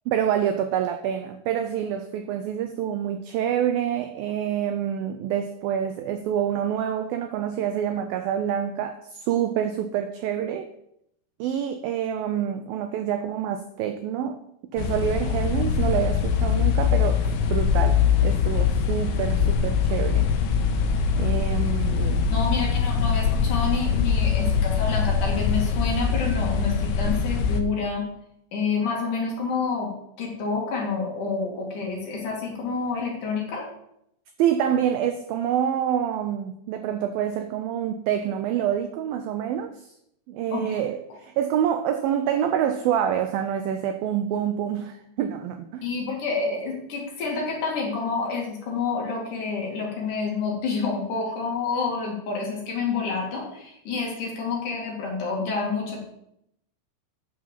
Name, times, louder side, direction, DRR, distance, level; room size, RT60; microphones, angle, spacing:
voice 1, 0.1-10.7 11.4-14.4 14.7-20.3 21.2-22.3 34.4-39.9 40.3-45.8, right 9 dB, 85° right, 2.0 m, -27 dB
sound 1, 14.8-27.6, left 6 dB, 75° left, 2.7 m, -23 dB
voice 2, 22.3-28.1 28.5-29.9 30.2-33.7 40.5-40.8 45.8-56.0, left 4 dB, 55° left, 3.5 m, -28 dB
9.4 x 6.4 x 7.3 m
omnidirectional pair, 4.9 m